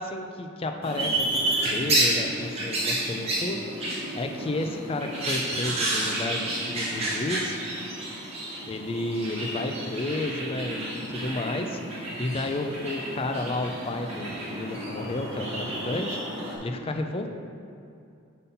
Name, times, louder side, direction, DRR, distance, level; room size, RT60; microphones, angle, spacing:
voice 1, 0.0-3.6 4.2-7.6 8.7-16.2 16.6-17.4, left 2 dB, 30° left, 5 dB, 0.4 m, -32 dB
sound 1, 0.8-16.6, right 1 dB, 30° right, 1.2 m, -30 dB
5.5 x 4.2 x 5.3 m, 2.5 s
head